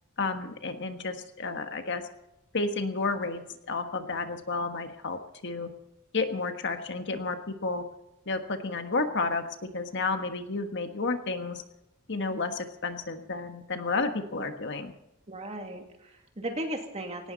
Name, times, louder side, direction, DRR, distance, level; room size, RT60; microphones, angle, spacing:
voice 1, 0.2-2.1 2.5-5.7 6.1-7.8 8.3-11.6 12.1-14.9, left 3 dB, 55° left, 7 dB, 1.5 m, -31 dB
voice 2, 15.3-17.3, right 1 dB, 30° right, 3 dB, 2.4 m, -36 dB
18.0 x 18.0 x 4.1 m, 0.86 s
head